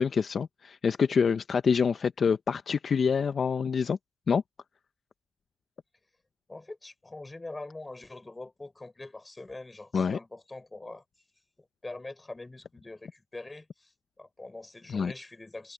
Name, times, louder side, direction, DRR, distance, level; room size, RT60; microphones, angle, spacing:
voice 1, 0.0-4.0 4.3-4.4 9.9-10.2 14.9-15.1, left 6 dB, 45° left, 0.7 m, -26 dB
voice 2, 6.5-11.0 11.8-13.9 14.2-15.7, left 2 dB, 15° left, 6.1 m, -43 dB
cardioid pair, 90°, 0 cm